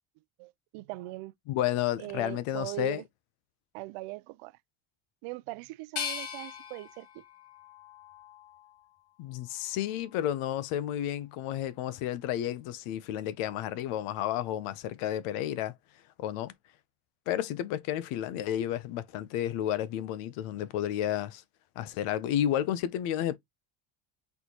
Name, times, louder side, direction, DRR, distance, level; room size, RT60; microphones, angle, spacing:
voice 1, 0.4-1.3 2.0-3.0 3.7-4.6 5.2-7.2, right 20 dB, 80° right, 0.6 m, -40 dB
voice 2, 1.5-3.0 9.2-15.7 16.2-16.5 17.3-21.4 21.8-23.4, left 11 dB, 85° left, 0.7 m, -31 dB
sound 1, 6.0-8.9 9.4-10.2, left 7 dB, 65° left, 1.3 m, -41 dB
4.3 x 3.3 x 2.9 m
cardioid pair, 145°, 50 cm